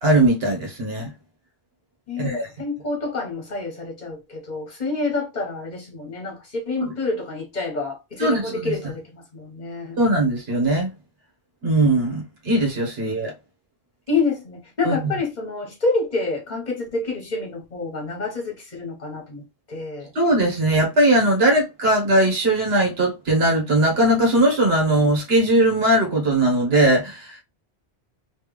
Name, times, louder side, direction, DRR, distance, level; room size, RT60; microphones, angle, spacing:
voice 1, 0.0-1.1 2.2-2.5 8.2-8.8 10.0-10.9 11.6-13.3 14.8-15.0 20.1-27.4, right 1 dB, 65° right, 1.5 m, -19 dB
voice 2, 2.1-10.0 14.1-20.1, left 3 dB, 45° left, 1.5 m, -28 dB
3.3 x 3.1 x 3.3 m
omnidirectional pair, 1.1 m